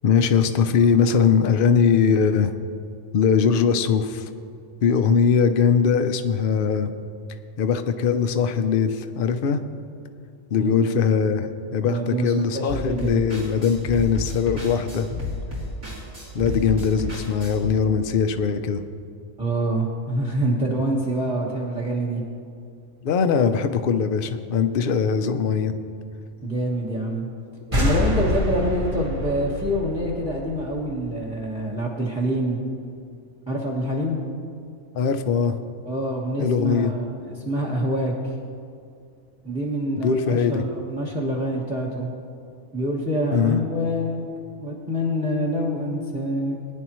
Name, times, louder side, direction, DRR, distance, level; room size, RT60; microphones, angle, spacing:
voice 1, 0.0-2.5 3.1-4.2 4.8-6.9 7.6-9.6 10.5-15.1 16.3-18.8 23.0-25.7 27.8-27.9 34.9-35.6 36.4-36.9 40.0-40.6 43.3-43.6, left 6 dB, 50° left, 8 dB, 0.7 m, -21 dB
voice 2, 10.6-11.0 11.8-13.2 19.4-22.2 26.4-27.2 27.7-32.6 33.5-34.2 35.8-38.3 39.4-42.1 42.7-44.2 44.6-46.6, right 1 dB, 5° right, -3 dB, 1.2 m, -26 dB
sound 1, 12.7-17.7, left 2 dB, 50° right, 3.9 m, -31 dB
sound 2, 27.7-31.2, left 1 dB, 25° right, 1.3 m, -26 dB
21.5 x 10.0 x 3.1 m, 2.4 s
omnidirectional pair, 1.5 m